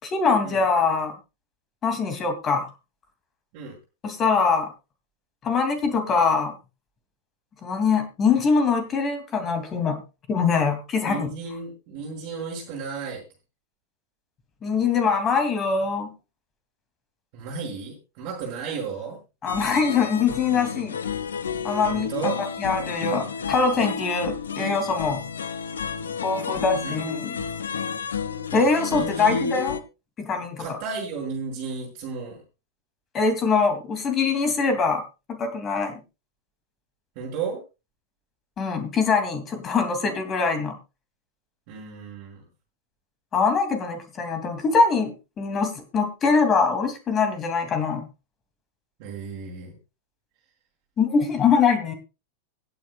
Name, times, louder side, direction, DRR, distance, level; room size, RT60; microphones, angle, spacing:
voice 1, 0.0-1.1 1.8-2.7 4.0-4.7 5.4-6.5 7.6-10.0 10.3-11.3 14.6-16.1 19.4-21.0 21.6-22.1 22.6-25.2 26.2-27.3 28.5-29.8 30.2-30.6 33.1-35.0 35.3-36.0 38.6-40.8 43.3-48.1 51.0-51.9, left 5 dB, 25° left, 7 dB, 2.7 m, -23 dB
voice 2, 11.1-13.2 17.3-19.2 21.9-22.4 26.8-27.0 28.9-29.5 30.6-32.4 37.1-37.6 41.7-42.4 49.0-49.8, right 5 dB, 45° right, -5 dB, 6.2 m, -33 dB
sound 1, 19.5-29.8, left 6 dB, 70° left, 0.8 m, -31 dB
24.5 x 8.8 x 2.4 m, 0.28 s
figure-of-eight pair, 90°, 0 cm